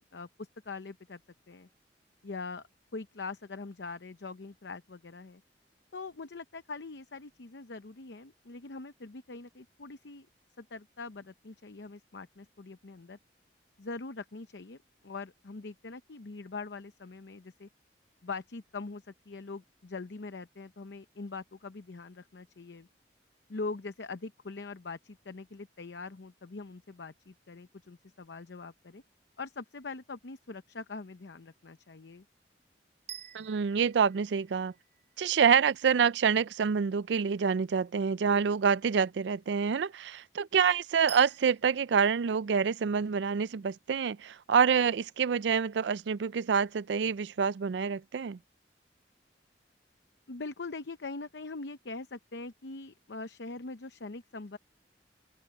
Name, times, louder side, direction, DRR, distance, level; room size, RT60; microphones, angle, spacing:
voice 1, 0.1-1.2 1.5-1.7 2.2-2.6 2.9-5.4 5.9-10.3 10.6-13.2 13.8-14.8 15.0-17.7 18.2-22.9 23.5-29.0 29.4-32.2 50.3-54.6, left 3 dB, 75° left, 0.8 m, -42 dB
sound 1, 33.1-35.2 41.1-41.8, right 10 dB, 40° right, 1.1 m, -47 dB
voice 2, 33.3-34.7 35.2-48.4, right 6 dB, 80° right, 0.4 m, -27 dB
open air
head